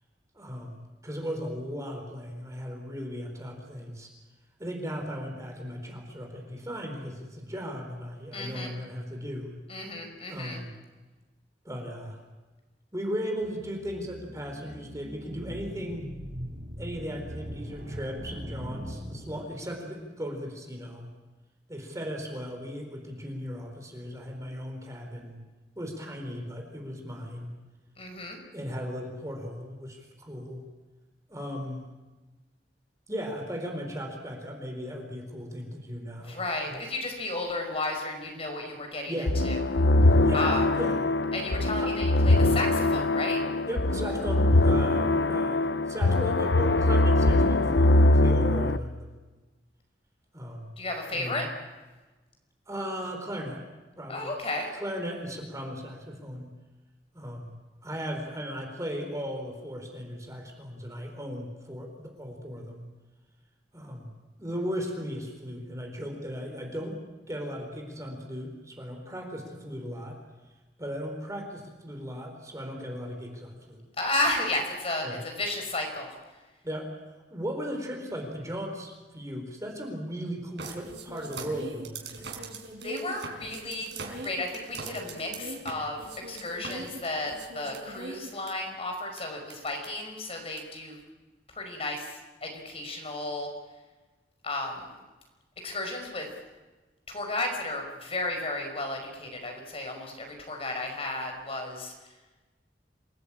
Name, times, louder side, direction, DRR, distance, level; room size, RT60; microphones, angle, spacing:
voice 1, 0.3-4.1 4.6-9.6 10.3-10.7 11.6-12.2 12.9-16.1 16.8-21.1 21.7-25.4 25.8-27.6 28.5-30.6 31.3-31.9 33.1-36.4 36.7-36.8 39.1-39.4 40.2-41.1 41.8-41.9 43.7-49.2 50.3-50.7 51.1-51.5 52.7-53.6 54.0-54.3 54.7-56.5 57.1-57.5 57.8-62.9 63.7-64.1 64.4-67.0 67.3-70.2 70.8-73.8 75.0-75.2 76.6-82.2, equal, 20° right, 2 dB, 4.3 m, -37 dB
voice 2, 8.3-8.7 9.7-10.6 28.0-28.4 36.2-39.6 40.3-40.7 41.3-43.4 50.8-51.5 54.1-54.7 74.0-76.1 82.8-91.0 91.5-93.5 94.4-94.9 95.6-96.3 97.1-101.9, left 2 dB, 35° left, 3 dB, 5.2 m, -33 dB
sound 1, 13.4-19.8, equal, 55° right, 4.1 m, -41 dB
sound 2, 39.3-48.8, left 2 dB, 80° left, 0.9 m, -22 dB
sound 3, 80.6-88.5 89.2-89.3 89.5-89.9 90.6-90.7, right 3 dB, 85° right, 4.5 m, -41 dB
28.0 x 18.5 x 8.8 m, 1.2 s
head